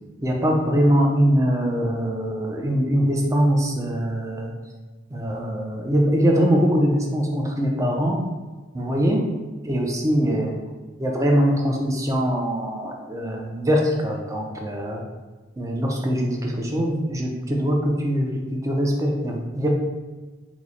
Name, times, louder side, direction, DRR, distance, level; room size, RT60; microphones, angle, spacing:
voice 1, 0.2-4.5 5.1-8.2 8.7-9.2 9.6-10.6 11.0-15.0 15.6-19.7, equal, 15° right, 0 dB, 0.4 m, -22 dB
3.0 x 2.0 x 3.8 m, 1.3 s
head